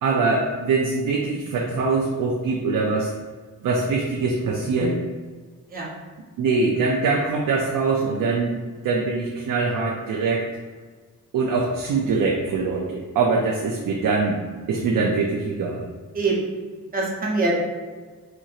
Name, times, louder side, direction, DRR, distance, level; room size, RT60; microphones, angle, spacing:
voice 1, 0.0-3.2 3.6-5.0 6.4-8.5 8.8-10.5 11.3-14.4 14.7-15.9, right 4 dB, 85° right, -1 dB, 0.5 m, -23 dB
voice 2, 16.1-16.5 16.9-17.6, right 3 dB, 25° right, -3 dB, 0.7 m, -23 dB
4.4 x 2.7 x 2.4 m, 1.5 s
wide cardioid pair, 120°, 32 cm